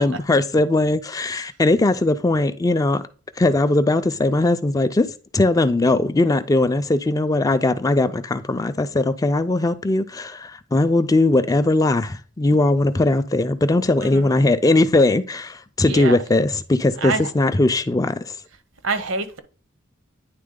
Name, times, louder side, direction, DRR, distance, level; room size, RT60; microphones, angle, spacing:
voice 1, 0.0-3.0 3.4-18.2, left 2 dB, 20° left, 0.3 m, -19 dB
voice 2, 15.9-16.2 17.0-17.3 18.8-19.4, right 4 dB, 80° right, 0.8 m, -25 dB
9.6 x 3.5 x 3.7 m
head